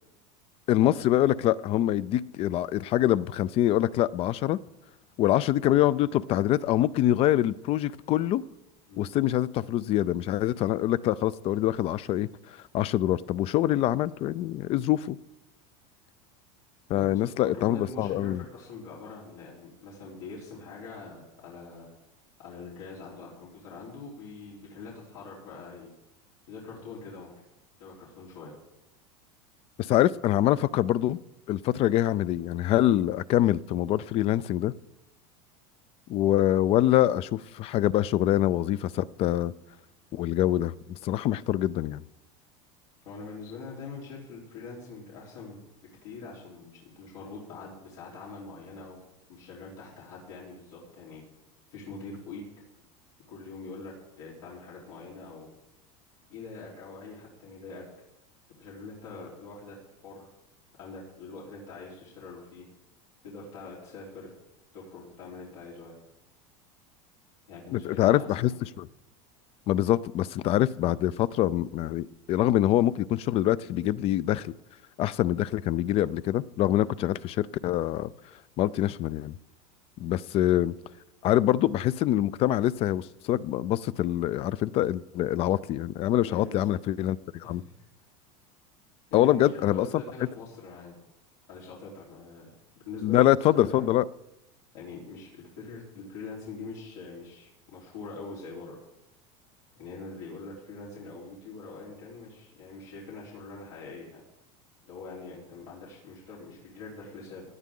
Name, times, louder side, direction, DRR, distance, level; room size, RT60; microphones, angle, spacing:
voice 1, 0.7-4.6 5.2-8.4 9.0-15.2 16.9-18.4 29.8-31.2 31.5-34.7 36.1-39.5 40.1-42.0 67.7-68.5 68.8-68.9 69.7-74.5 75.0-78.1 78.6-79.3 80.0-80.7 81.2-87.6 89.1-90.0 93.0-94.0, left 13 dB, 35° left, 20 dB, 0.4 m, -25 dB
voice 2, 16.9-21.9 22.4-25.9 26.5-27.3 27.8-28.5 43.0-49.0 49.3-51.2 51.7-52.4 53.3-55.5 56.3-57.8 58.6-59.8 60.0-60.3 60.7-62.7 63.2-64.3 64.7-65.9 67.5-68.5 76.7-76.9 80.6-80.7 86.2-86.7 87.4-87.7 89.1-90.9 91.5-92.5 92.8-93.2 93.5-93.9 94.7-98.8 99.7-104.2 104.8-107.4, left 4 dB, 85° left, -6 dB, 3.9 m, -43 dB
17.5 x 10.5 x 3.8 m, 0.91 s
supercardioid pair, 140°, 16 cm